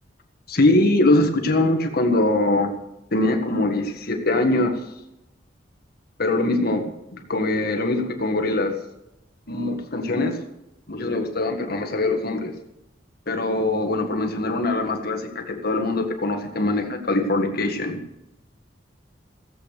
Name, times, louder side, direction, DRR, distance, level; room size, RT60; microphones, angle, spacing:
voice 1, 0.5-2.7 3.1-4.8 6.2-6.8 7.1-8.7 9.5-10.4 10.9-12.5 13.3-18.0, left 2 dB, 55° left, 5 dB, 1.7 m, -22 dB
17.0 x 8.3 x 6.7 m, 0.88 s
head